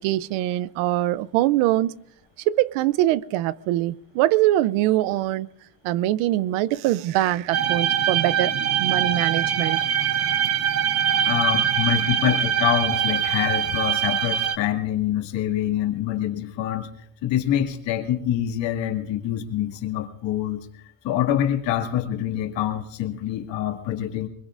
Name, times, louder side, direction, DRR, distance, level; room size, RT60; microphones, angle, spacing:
voice 1, 0.0-1.9 2.5-5.5 5.8-8.5 8.8-9.8, right 15 dB, 80° right, 0.7 m, -23 dB
sound 1, 7.5-14.6, right 9 dB, 30° right, 0.6 m, -23 dB
voice 2, 11.2-16.9 17.2-20.6 21.0-24.3, left 11 dB, 60° left, 2.2 m, -25 dB
24.5 x 22.0 x 2.5 m
cardioid pair, 165°, 48 cm